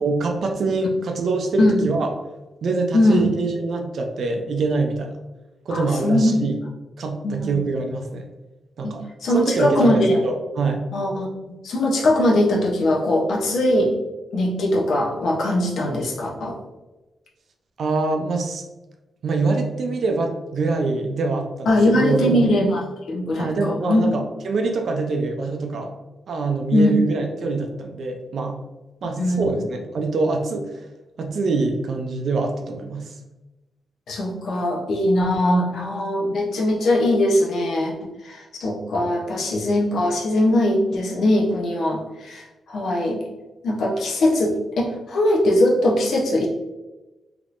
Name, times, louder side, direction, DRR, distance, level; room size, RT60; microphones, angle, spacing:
voice 1, 0.0-2.1 2.6-5.2 5.7-6.5 7.0-8.2 8.8-9.0 9.3-10.8 17.8-18.6 19.2-21.7 21.9-22.5 23.4-25.9 26.3-28.6 29.0-30.7 31.2-33.1, right 3 dB, 55° right, 4 dB, 0.5 m, -24 dB
voice 2, 2.9-3.3 5.7-6.3 7.2-7.6 8.8-9.0 9.2-10.2 10.9-11.3 11.6-14.0 14.3-16.5 21.7-22.8 23.1-24.0 26.7-27.0 29.2-29.7 34.1-37.9 38.2-43.2 43.6-46.5, left 1 dB, 65° left, -1 dB, 0.7 m, -20 dB
3.5 x 2.9 x 2.5 m, 1.1 s
wide cardioid pair, 175°, 0 cm